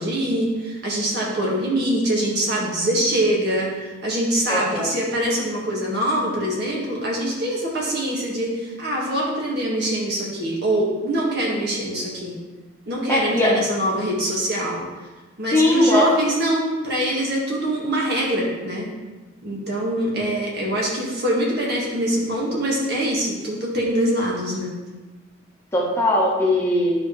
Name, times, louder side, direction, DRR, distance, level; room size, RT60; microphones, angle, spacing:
voice 1, 0.0-12.3 12.9-14.8 15.4-18.9 19.4-24.7, right 1 dB, 50° right, -4 dB, 1.8 m, -24 dB
voice 2, 4.5-4.9 13.1-13.5 15.5-16.1 25.7-26.9, left 1 dB, 10° left, -5 dB, 1.1 m, -19 dB
10.5 x 4.9 x 3.2 m, 1.2 s
head